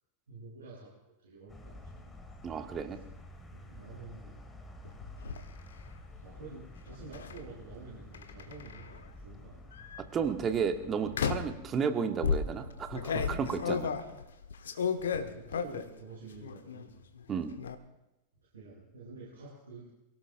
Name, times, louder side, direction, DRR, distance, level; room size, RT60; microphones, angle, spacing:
voice 1, 0.3-2.1 2.9-3.0 3.5-4.4 6.2-9.7 14.7-17.0 18.5-19.9, right 3 dB, 70° right, -8 dB, 7.7 m, -49 dB
sound 1, 1.5-11.8, left 1 dB, 15° left, 1.9 m, -50 dB
voice 2, 2.4-3.0 10.1-13.9 17.3-17.5, right 6 dB, 25° right, 6 dB, 1.5 m, -32 dB
sound 2, 4.8-5.4 7.1-7.4 8.1-9.0 9.7-10.0 11.1-11.6 12.2-16.0 16.3-16.9 17.2-17.8, left 6 dB, 65° left, 1.1 m, -33 dB
27.5 x 17.5 x 2.6 m, 0.92 s
figure-of-eight pair, 90°, 0 cm